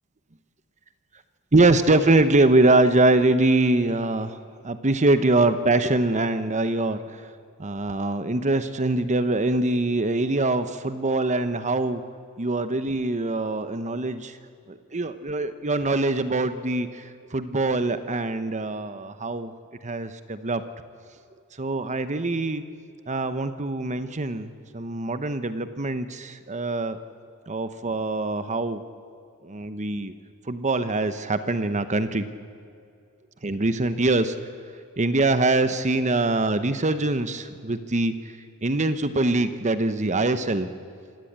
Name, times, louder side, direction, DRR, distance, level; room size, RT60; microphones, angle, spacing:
voice 1, 1.5-4.4 4.6-7.0 7.6-12.0 12.4-14.3 14.7-19.5 19.8-20.6 21.6-22.6 23.1-27.0 27.5-28.8 29.4-30.1 30.5-32.3 33.4-34.4 35.0-38.1 38.6-40.7, right 2 dB, 35° right, 11 dB, 1.0 m, -23 dB
27.0 x 17.0 x 8.8 m, 2.4 s
head